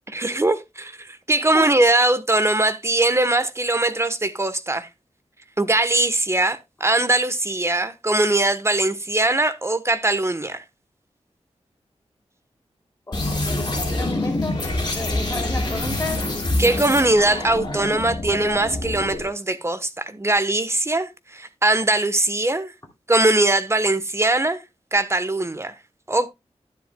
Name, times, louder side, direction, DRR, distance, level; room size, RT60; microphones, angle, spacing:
voice 1, 0.1-4.9 5.6-10.6 16.6-22.7 23.1-24.6 24.9-25.7 26.1-26.3, right 2 dB, 25° right, 1.0 m, -21 dB
sound 1, 13.1-19.3, left 2 dB, 40° left, 5.9 m, -26 dB
voice 2, 13.1-16.3, left 2 dB, 25° left, 2.9 m, -33 dB
12.0 x 10.0 x 2.2 m
wide cardioid pair, 105°, 12 cm